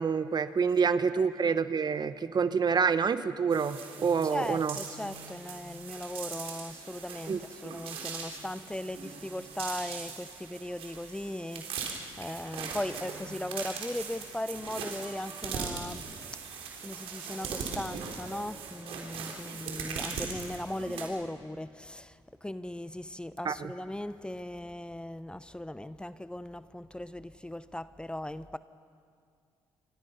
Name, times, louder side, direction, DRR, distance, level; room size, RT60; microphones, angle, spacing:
voice 1, 0.0-4.8 7.3-7.4 23.4-23.7, right 6 dB, 45° right, 1.1 m, -27 dB
sound 1, 3.5-21.1, right 5 dB, 75° right, 3.8 m, -40 dB
voice 2, 4.3-16.4 16.8-28.6, left 1 dB, 10° left, 0.8 m, -38 dB
28.5 x 25.0 x 5.7 m
supercardioid pair, 60°, 10 cm